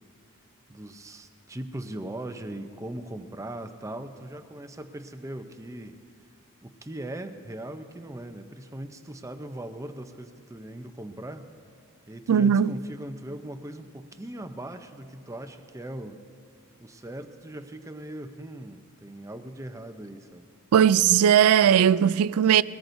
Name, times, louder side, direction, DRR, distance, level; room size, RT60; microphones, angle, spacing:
voice 1, 0.7-6.0 6.6-11.5 12.1-16.2 16.8-20.5, right 1 dB, 15° right, 0.6 m, -39 dB
voice 2, 12.3-12.8 20.7-22.6, right 9 dB, 75° right, 0.3 m, -18 dB
22.0 x 18.5 x 2.7 m
head